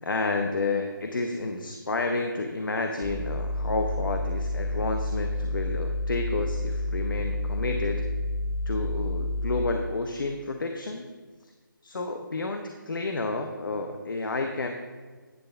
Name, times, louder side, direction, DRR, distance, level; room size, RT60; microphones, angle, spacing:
voice 1, 0.0-8.1 8.7-11.0 11.8-14.7, left 3 dB, 65° left, 4 dB, 0.7 m, -30 dB
sound 1, 3.0-9.8, left 1 dB, 15° right, 0.5 m, -29 dB
9.4 x 3.3 x 6.6 m, 1.5 s
hypercardioid pair, 175°, 12 cm